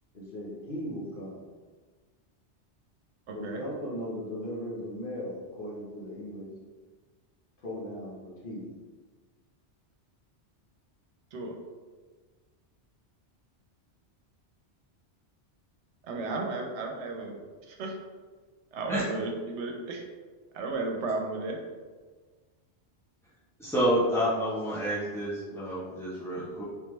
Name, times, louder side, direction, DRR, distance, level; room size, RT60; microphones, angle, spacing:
voice 1, 0.1-1.4 3.3-6.5 7.6-8.7, equal, 50° left, -6 dB, 1.2 m, -37 dB
voice 2, 3.3-3.6 11.3-11.5 16.1-17.4 17.7-18.0 18.7-20.0 20.5-21.6, right 3 dB, 80° right, 1 dB, 0.9 m, -33 dB
voice 3, 23.6-26.6, equal, 5° left, -10 dB, 0.4 m, -28 dB
3.4 x 3.2 x 3.1 m, 1.4 s
omnidirectional pair, 1.2 m